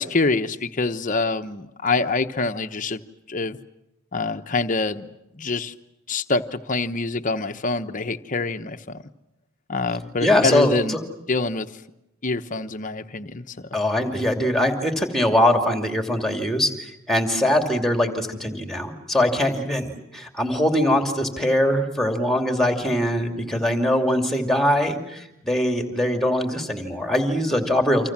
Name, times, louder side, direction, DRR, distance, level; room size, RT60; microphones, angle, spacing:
voice 1, 0.0-3.0 3.3-3.6 4.1-5.1 5.3-5.7 6.1-9.0 9.7-11.0 11.3-11.7 12.2-13.6, left 3 dB, 40° left, 8 dB, 1.0 m, -25 dB
voice 2, 10.2-11.0 13.7-28.1, left 1 dB, ahead, 5 dB, 2.6 m, -22 dB
29.0 x 26.0 x 7.4 m, 0.89 s
head